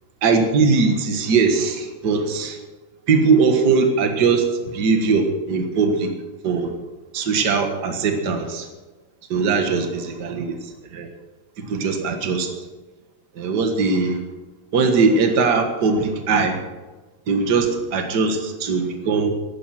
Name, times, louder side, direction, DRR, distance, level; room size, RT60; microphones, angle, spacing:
voice 1, 0.2-2.6 3.1-6.1 6.4-6.7 7.1-8.7 9.3-11.1 11.6-12.5 13.3-14.2 14.7-16.6 17.3-19.3, right 4 dB, 55° right, 5 dB, 2.1 m, -20 dB
15.0 x 11.5 x 6.0 m, 1.2 s
omnidirectional pair, 2.3 m